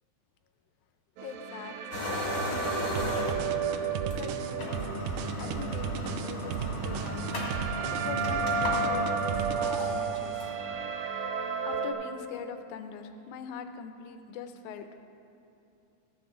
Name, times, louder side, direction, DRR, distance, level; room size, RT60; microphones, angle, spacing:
voice 1, 1.2-4.8 5.4-7.3 8.0-10.5 11.6-14.9, left 6 dB, 80° left, 8 dB, 1.9 m, -43 dB
sound 1, 1.2-11.9, right 5 dB, 70° right, 2.2 m, -33 dB
sound 2, 1.9-3.6 4.1-4.2 4.5-10.7, equal, 35° left, 1.9 m, -35 dB
sound 3, 3.0-10.3, right 8 dB, 85° right, 2.1 m, -36 dB
14.5 x 10.5 x 3.7 m, 2.7 s
omnidirectional pair, 3.7 m